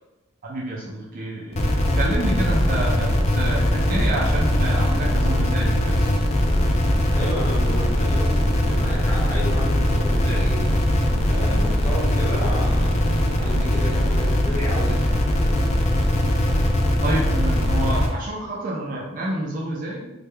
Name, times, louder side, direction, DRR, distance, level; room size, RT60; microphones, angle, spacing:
voice 1, 0.4-6.2 17.0-20.1, right 1 dB, 35° right, -4 dB, 0.4 m, -29 dB
sound 1, 1.5-18.1, left 1 dB, 30° left, 0.3 m, -20 dB
voice 2, 7.1-10.7 11.2-15.5, equal, 10° left, -8 dB, 1.0 m, -32 dB
3.3 x 2.2 x 3.2 m, 1.0 s
head